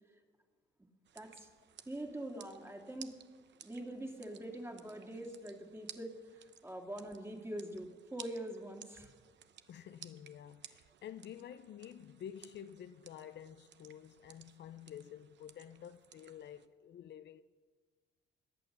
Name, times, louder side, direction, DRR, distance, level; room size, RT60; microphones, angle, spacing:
sound 1, 1.0-16.7, right 9 dB, 65° right, 0.9 m, -57 dB
voice 1, 1.1-1.5 1.9-3.2 3.6-9.1, right 1 dB, 10° right, 2.3 m, -44 dB
voice 2, 9.7-17.4, left 9 dB, 60° left, 0.6 m, -50 dB
18.0 x 11.0 x 6.7 m
cardioid pair, 90°, 20 cm